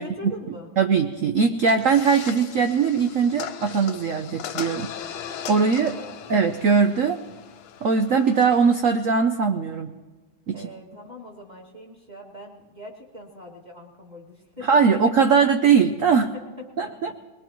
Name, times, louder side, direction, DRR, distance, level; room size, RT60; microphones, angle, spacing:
voice 1, 0.0-0.7 5.8-6.2 10.5-14.7 16.8-17.1, left 1 dB, 20° right, -4 dB, 2.2 m, -42 dB
voice 2, 0.8-6.0 6.3-7.2 7.8-9.9 10.5-10.6 14.7-16.3 16.8-17.1, right 5 dB, 90° right, 6 dB, 0.7 m, -20 dB
sound 1, 1.6-8.7, left 9 dB, 75° left, 1.5 m, -38 dB
21.5 x 21.0 x 3.1 m, 1.2 s
omnidirectional pair, 2.3 m